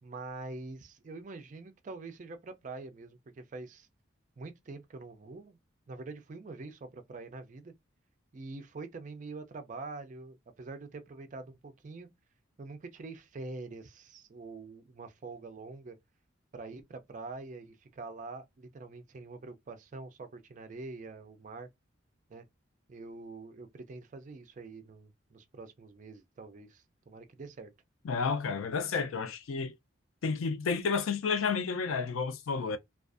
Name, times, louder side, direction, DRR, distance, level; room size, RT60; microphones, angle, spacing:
voice 1, 0.0-3.9 4.4-5.6 5.9-7.7 8.3-12.1 12.6-16.0 16.5-21.7 22.3-22.4 22.9-27.7, right 3 dB, 40° right, 0.4 m, -45 dB
voice 2, 28.0-29.7 30.2-32.8, left 5 dB, 85° left, 0.4 m, -31 dB
2.4 x 2.3 x 2.4 m
head